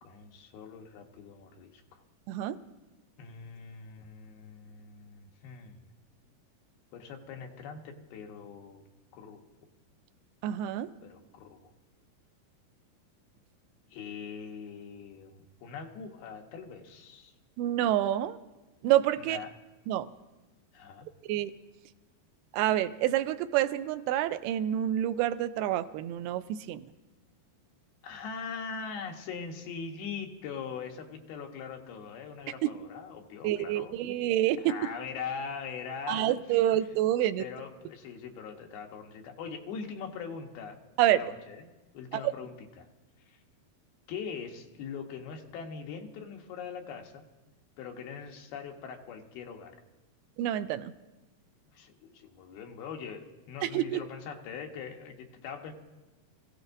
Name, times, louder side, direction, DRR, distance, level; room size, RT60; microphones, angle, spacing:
voice 1, 0.0-2.0 3.2-5.9 6.9-8.8 9.1-9.4 11.0-11.7 13.9-17.3 19.2-19.5 20.7-21.1 28.0-34.0 34.6-36.4 37.4-40.8 41.1-42.9 43.3-43.4 44.1-47.2 47.8-49.8 51.7-55.7, left 6 dB, 75° left, 2 dB, 3.0 m, -42 dB
voice 2, 10.4-10.9 17.6-18.4 18.8-19.4 19.9-20.1 21.3-21.5 22.5-26.8 33.4-34.8 36.1-37.4 41.0-41.2 42.1-42.2 50.4-50.9 53.6-54.0, right 12 dB, 85° right, 12 dB, 2.5 m, -27 dB
26.0 x 15.5 x 2.6 m, 1.1 s
omnidirectional pair, 4.5 m